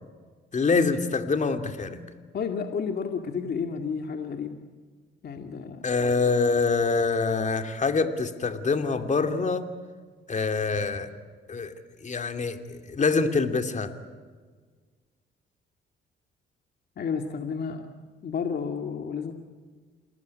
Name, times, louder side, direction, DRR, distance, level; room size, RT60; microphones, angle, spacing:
voice 1, 0.5-2.0 5.8-9.7 10.3-11.1 11.5-11.7 12.0-13.9, left 4 dB, 35° left, 8 dB, 2.8 m, -25 dB
voice 2, 2.3-4.6 5.2-5.8 17.0-17.9 18.2-19.3, left 6 dB, 55° left, 5 dB, 2.3 m, -31 dB
28.5 x 19.5 x 9.5 m, 1.5 s
cardioid pair, 90°, 20 cm